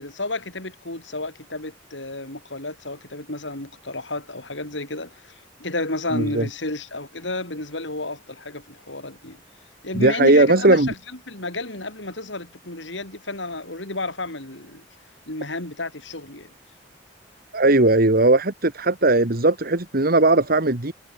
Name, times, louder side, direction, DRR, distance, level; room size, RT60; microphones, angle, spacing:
voice 1, 0.0-9.4 9.8-10.9 11.3-14.9 15.3-16.5, left 2 dB, 75° left, 7.6 m, -32 dB
voice 2, 6.1-6.5 9.9-10.9 17.5-20.9, right 2 dB, 55° right, 2.1 m, -18 dB
head